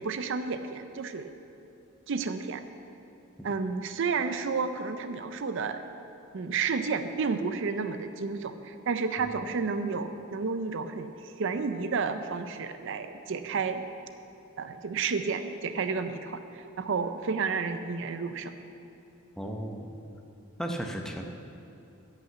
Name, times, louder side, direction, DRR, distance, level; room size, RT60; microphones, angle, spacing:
voice 1, 0.0-1.3 2.1-2.6 3.4-5.8 6.3-13.8 14.6-18.5, right 5 dB, 60° right, 9 dB, 0.5 m, -31 dB
voice 2, 19.4-19.9 20.6-21.2, right 1 dB, ahead, 2 dB, 0.7 m, -35 dB
11.5 x 5.7 x 8.1 m, 2.8 s
head